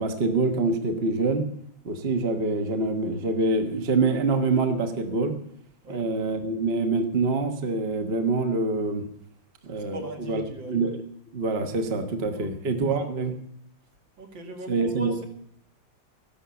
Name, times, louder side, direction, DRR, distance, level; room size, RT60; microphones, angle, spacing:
voice 1, 0.0-1.5 1.8-5.4 5.9-9.1 9.6-11.0 11.3-13.3 14.7-15.1, right 3 dB, 35° right, 6 dB, 1.2 m, -25 dB
voice 2, 9.7-10.8 12.4-12.5 13.1-13.2 14.2-15.3, equal, 60° right, 3 dB, 2.9 m, -40 dB
14.0 x 11.5 x 7.0 m, 0.71 s
omnidirectional pair, 2.3 m